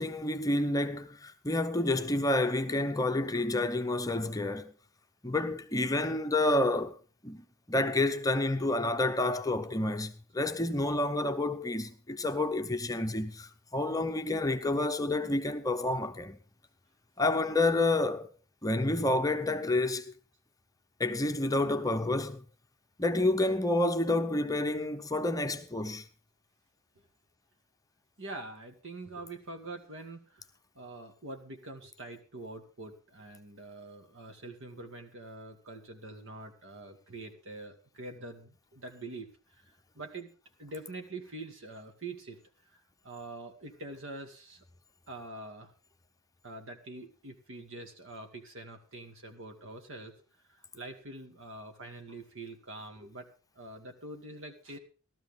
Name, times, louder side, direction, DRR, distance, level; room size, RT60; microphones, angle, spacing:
voice 1, 0.0-4.7 5.2-7.0 7.2-16.4 17.2-18.3 18.6-20.0 21.0-22.4 23.0-26.0, left 2 dB, 15° left, 0.8 m, -29 dB
voice 2, 28.2-30.5 30.7-40.3 40.6-42.4 42.7-44.6 45.1-45.7 46.4-50.2 50.5-53.3 53.5-54.8, right 2 dB, 60° right, 2.2 m, -45 dB
15.5 x 13.0 x 3.6 m
head